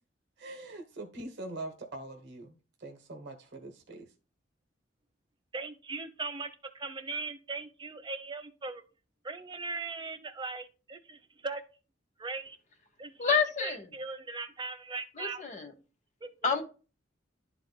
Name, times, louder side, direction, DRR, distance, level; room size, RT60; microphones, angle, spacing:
voice 1, 0.4-4.1, right 2 dB, 65° right, 1.1 m, -43 dB
voice 2, 5.5-6.5 6.7-8.8 9.2-11.6 12.2-12.6 13.0-15.4 16.2-16.3, right 3 dB, 25° right, 0.8 m, -39 dB
voice 3, 13.2-13.9 15.1-15.7 16.4-16.6, left 5 dB, 40° left, 1.0 m, -28 dB
11.5 x 4.1 x 2.2 m
head